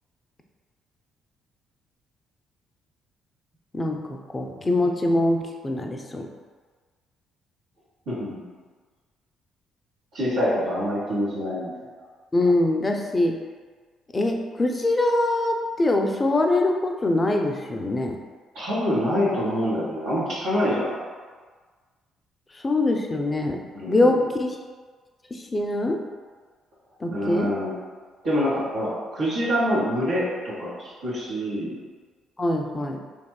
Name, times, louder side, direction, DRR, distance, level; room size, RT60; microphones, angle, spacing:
voice 1, 3.7-6.3 12.3-13.4 14.1-18.2 22.5-23.6 23.9-24.6 25.3-26.0 27.0-27.5 32.4-33.0, left 2 dB, 25° left, 3 dB, 0.3 m, -23 dB
voice 2, 8.1-8.4 10.1-11.7 18.5-20.9 23.7-24.2 27.1-27.7 28.2-31.8, equal, 75° right, -11 dB, 0.8 m, -26 dB
2.8 x 2.1 x 2.3 m, 1.5 s
hypercardioid pair, 50°, 0 cm